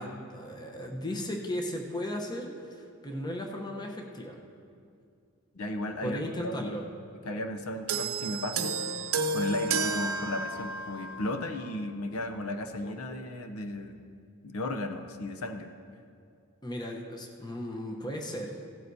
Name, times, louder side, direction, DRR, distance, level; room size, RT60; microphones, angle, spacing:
voice 1, 0.0-4.4 6.0-6.8 16.6-18.6, equal, 20° left, 1 dB, 0.9 m, -36 dB
voice 2, 5.5-6.7 7.3-8.8 9.3-14.0 14.4-15.7, left 1 dB, 80° left, 6 dB, 0.7 m, -35 dB
sound 1, 7.9-11.5 12.4-12.5, right 4 dB, 70° right, 0.7 m, -32 dB
16.5 x 12.0 x 2.8 m, 2.4 s
head